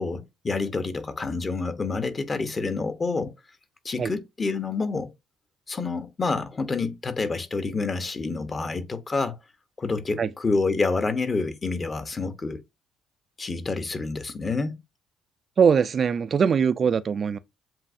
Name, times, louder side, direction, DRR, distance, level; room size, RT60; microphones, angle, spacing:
voice 1, 0.0-3.3 3.8-5.1 5.7-9.4 9.8-12.6 13.4-14.7, left 3 dB, 35° left, 0.9 m, -28 dB
voice 2, 15.6-17.4, right 6 dB, 45° right, 0.3 m, -21 dB
7.4 x 2.6 x 2.6 m
hypercardioid pair, 60°, 0 cm